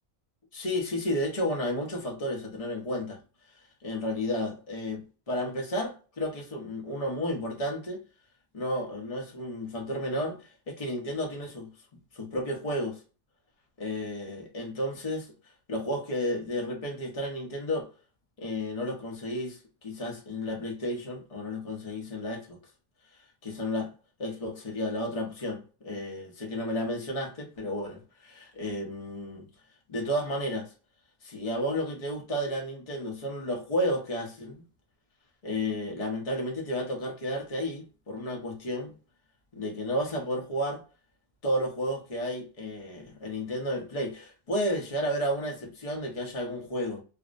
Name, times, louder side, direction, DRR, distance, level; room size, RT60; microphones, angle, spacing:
voice 1, 0.5-3.2 3.8-8.0 8.5-11.7 12.1-13.0 13.8-17.9 18.4-22.6 23.4-23.9 24.2-29.5 29.9-30.7 31.2-34.6 35.4-39.0 39.5-40.8 41.4-47.0, equal, 35° left, 0.7 m, -32 dB
2.5 x 2.0 x 2.4 m
omnidirectional pair, 1.3 m